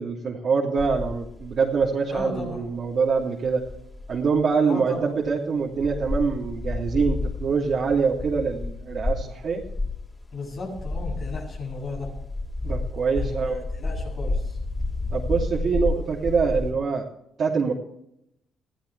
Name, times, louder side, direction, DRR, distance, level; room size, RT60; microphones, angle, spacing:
voice 1, 0.0-3.6 4.1-9.6 12.6-13.7 15.1-17.1 17.4-17.7, right 5 dB, 55° right, -4 dB, 2.8 m, -24 dB
sound 1, 0.8-4.4 4.9-5.0 5.2-5.3 5.7-16.7, left 2 dB, 20° left, 4.8 m, -31 dB
voice 2, 2.1-2.6 4.6-5.1 10.3-12.1 13.2-14.6, left 3 dB, 55° left, -3 dB, 7.8 m, -35 dB
22.0 x 14.5 x 3.4 m, 0.77 s
cardioid pair, 90°, 0 cm